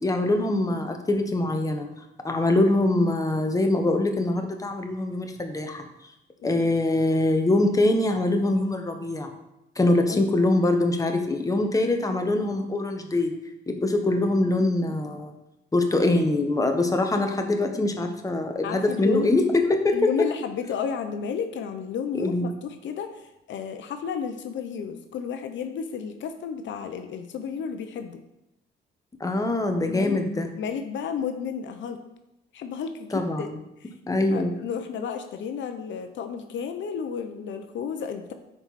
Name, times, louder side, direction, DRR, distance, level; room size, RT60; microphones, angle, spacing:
voice 1, 0.0-1.9 2.2-5.8 6.4-9.3 9.8-13.3 13.7-15.3 15.7-19.9 22.1-22.5 29.2-30.5 33.1-33.5 34.1-34.5, left 2 dB, 15° left, 4 dB, 1.1 m, -23 dB
voice 2, 18.6-19.3 19.9-28.2 29.9-30.2 30.6-32.0 32.5-33.5 33.8-33.9 34.3-38.3, left 7 dB, 70° left, 7 dB, 0.7 m, -32 dB
9.9 x 4.7 x 4.2 m, 0.88 s
cardioid pair, 90°, 20 cm